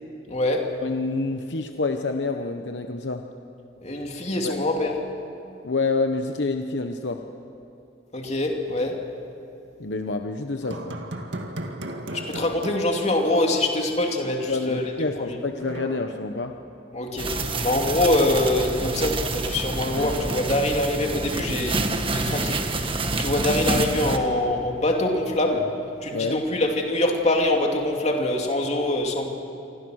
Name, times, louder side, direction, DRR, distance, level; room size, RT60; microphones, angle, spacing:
voice 1, 0.3-0.7 3.8-4.9 8.1-9.1 12.1-14.9 15.2-15.4 16.9-22.6 23.2-29.3, left 1 dB, 35° left, 2 dB, 2.6 m, -24 dB
voice 2, 0.8-3.3 4.4-4.6 5.6-7.2 9.8-11.0 14.5-16.6 26.1-26.4, left 3 dB, 65° left, 5 dB, 1.0 m, -27 dB
sound 1, 10.6-14.0 14.2-14.3 15.6-17.0 19.8-21.4, right 1 dB, 70° right, 2.1 m, -37 dB
sound 2, 17.2-24.2, right 2 dB, 30° right, 1.5 m, -27 dB
28.0 x 25.0 x 6.4 m, 2.9 s
head